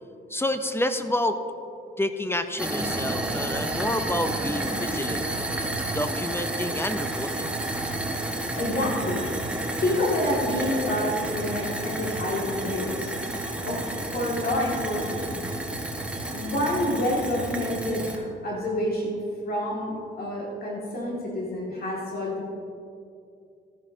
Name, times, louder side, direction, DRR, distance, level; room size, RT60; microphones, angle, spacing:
voice 1, 0.3-1.4 2.0-5.2 5.9-7.5, left 1 dB, 10° left, 9 dB, 0.6 m, -29 dB
sound 1, 2.6-18.2, right 1 dB, 5° right, 1.4 m, -31 dB
voice 2, 8.5-9.3 9.8-13.2 13.6-15.3 16.3-22.6, left 1 dB, 50° left, -4 dB, 2.2 m, -28 dB
14.0 x 10.5 x 2.8 m, 2.6 s
cardioid pair, 90°, 20 cm